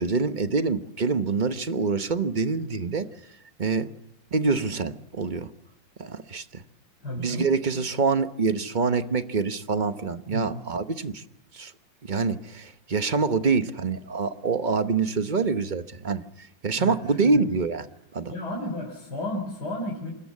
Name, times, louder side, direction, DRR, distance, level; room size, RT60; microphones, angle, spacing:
voice 1, 0.0-3.1 3.6-3.9 4.3-5.5 6.0-6.6 7.2-11.2 11.5-11.7 12.0-16.2 16.6-17.8 18.1-18.3, right 4 dB, 35° right, 9 dB, 0.9 m, -25 dB
voice 2, 7.0-7.5 10.3-10.6 16.8-17.4 18.3-20.1, left 1 dB, 60° left, 0 dB, 4.5 m, -33 dB
27.5 x 14.0 x 8.3 m, 0.85 s
omnidirectional pair, 2.0 m